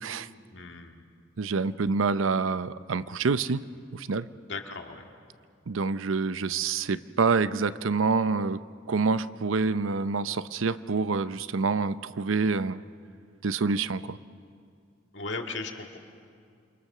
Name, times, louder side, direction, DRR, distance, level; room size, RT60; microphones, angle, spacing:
voice 1, 0.5-1.0 4.5-5.1 15.1-16.0, left 3 dB, 65° left, 3 dB, 1.9 m, -37 dB
voice 2, 1.4-3.6 3.9-4.3 5.7-8.6 8.9-12.8 13.4-14.2, right 4 dB, 90° right, 14 dB, 0.6 m, -27 dB
28.0 x 23.5 x 6.6 m, 2.3 s
head